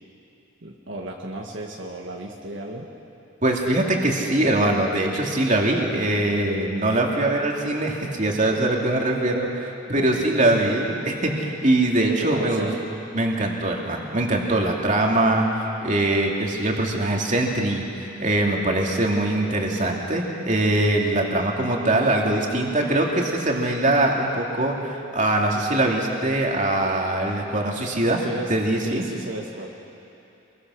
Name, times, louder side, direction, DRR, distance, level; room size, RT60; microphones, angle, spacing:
voice 1, 0.6-2.9 9.9-10.7 12.1-12.7 28.2-28.5 28.8-29.7, right 1 dB, 65° right, -1 dB, 1.7 m, -34 dB
voice 2, 3.4-12.7 13.1-17.8 18.2-28.2 28.5-29.0, right 1 dB, 40° right, 0 dB, 2.6 m, -22 dB
27.0 x 22.0 x 6.4 m, 2.8 s
head